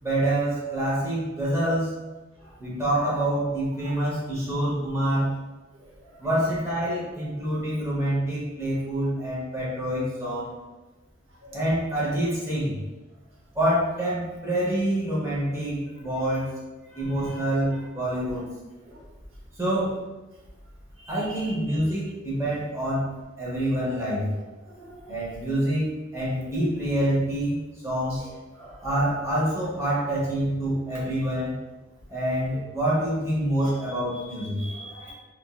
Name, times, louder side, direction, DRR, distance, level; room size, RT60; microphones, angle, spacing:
voice 1, 0.0-1.9 2.6-5.3 6.2-10.5 11.5-12.8 13.5-16.5 16.9-18.4 19.6-19.9 21.1-23.1 23.4-24.3 25.1-27.6 27.8-28.2 28.8-31.5 32.1-34.6, right 1 dB, 15° right, -8 dB, 0.9 m, -26 dB
voice 2, 21.0-21.8 24.7-25.1 28.6-28.8 34.6-35.1, right 2 dB, 70° right, -3 dB, 0.8 m, -44 dB
3.0 x 2.7 x 2.3 m, 1.2 s
head